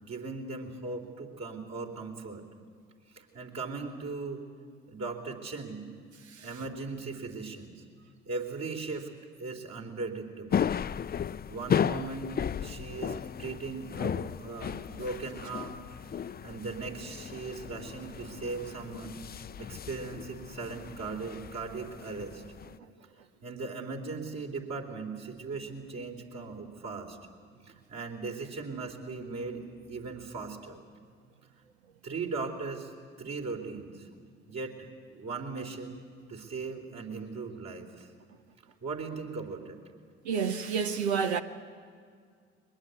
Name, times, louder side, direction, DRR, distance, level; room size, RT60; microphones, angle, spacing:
voice 1, 0.0-2.4 3.1-4.4 4.9-5.9 6.4-7.8 8.3-9.1 9.4-10.7 11.5-12.3 12.6-15.8 16.4-19.2 19.6-22.4 23.4-27.2 27.6-30.8 32.0-32.9 33.2-34.1 34.5-36.0 36.3-38.1 38.8-39.8, right 4 dB, 55° right, 3.9 m, -38 dB
sound 1, 10.5-22.8, left 8 dB, 30° left, 0.5 m, -35 dB
voice 2, 40.2-41.4, right 6 dB, 85° right, 0.8 m, -29 dB
22.0 x 21.0 x 8.5 m
hypercardioid pair, 50°, 32 cm